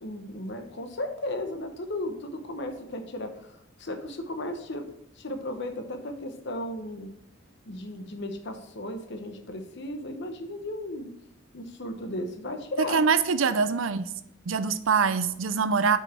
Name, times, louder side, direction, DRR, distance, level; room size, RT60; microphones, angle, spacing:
voice 1, 0.0-4.8 5.2-7.1 7.7-11.1 11.5-13.0, left 1 dB, 60° left, 6 dB, 0.9 m, -35 dB
voice 2, 12.9-14.1 14.5-16.0, right 5 dB, 80° right, 12 dB, 0.6 m, -24 dB
6.1 x 5.7 x 4.4 m, 0.83 s
head